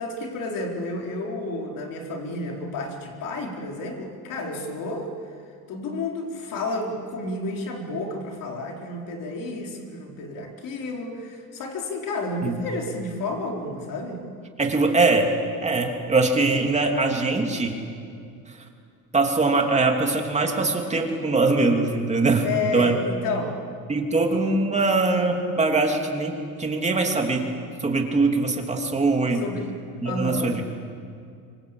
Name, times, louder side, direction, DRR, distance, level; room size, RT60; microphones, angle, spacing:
voice 1, 0.0-5.1 5.7-14.2 22.4-23.6 29.4-29.7 30.0-30.5, left 2 dB, 65° left, 1 dB, 4.5 m, -31 dB
voice 2, 14.6-15.3 15.6-17.8 19.1-22.5 22.7-23.0 23.9-27.5 27.8-29.4 30.0-30.6, right 3 dB, 20° right, 2 dB, 3.0 m, -22 dB
25.5 x 25.0 x 8.6 m, 2.4 s
cardioid pair, 140°, 36 cm